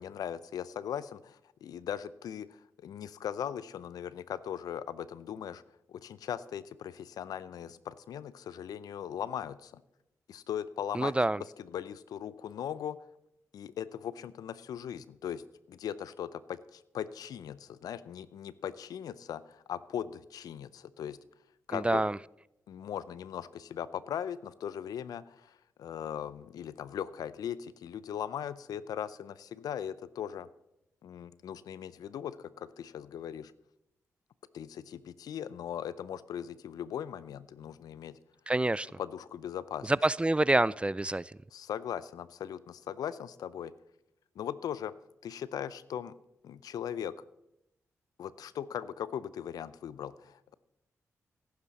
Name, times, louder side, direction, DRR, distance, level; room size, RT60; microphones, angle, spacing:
voice 1, 0.0-5.6 5.9-9.8 10.3-13.0 13.5-15.4 15.7-21.2 21.7-22.0 22.7-30.5 31.0-33.5 34.5-38.2 39.0-39.9 41.5-43.7 44.4-44.9 45.2-46.1 46.4-47.1 48.2-50.5, left 9 dB, 75° left, 17 dB, 0.5 m, -39 dB
voice 2, 10.9-11.4 21.7-22.1 38.5-38.9 40.0-41.2, right 2 dB, 15° right, 22 dB, 0.3 m, -27 dB
14.5 x 11.5 x 4.1 m, 0.86 s
supercardioid pair, 40°, 6 cm